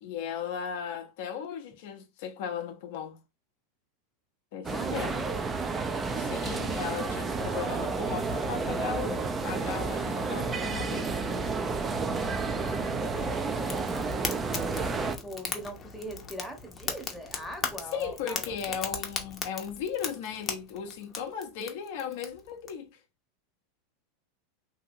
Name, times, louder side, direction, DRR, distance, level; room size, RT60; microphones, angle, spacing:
voice 1, 0.0-3.2 4.5-5.1 6.2-11.1 17.9-23.0, left 7 dB, 65° left, 0.6 m, -36 dB
sound 1, 4.6-15.2, right 4 dB, 20° right, 0.5 m, -31 dB
voice 2, 4.7-5.3 12.5-18.8, right 1 dB, 5° right, 0.9 m, -42 dB
Fire, 13.6-22.7, left 6 dB, 30° left, 0.7 m, -38 dB
2.8 x 2.7 x 2.6 m
hypercardioid pair, 110°, 0 cm